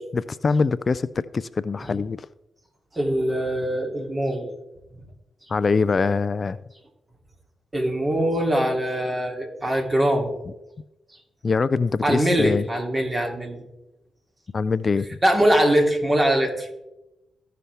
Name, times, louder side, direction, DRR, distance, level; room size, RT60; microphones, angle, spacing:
voice 1, 0.1-2.3 5.5-6.6 11.4-12.7 14.5-15.1, left 4 dB, 45° left, 16 dB, 0.3 m, -23 dB
voice 2, 2.9-4.5 7.7-10.3 12.0-13.6 15.2-16.8, right 1 dB, 25° right, 1 dB, 2.9 m, -22 dB
15.0 x 5.7 x 3.4 m, 0.95 s
supercardioid pair, 50°, 0 cm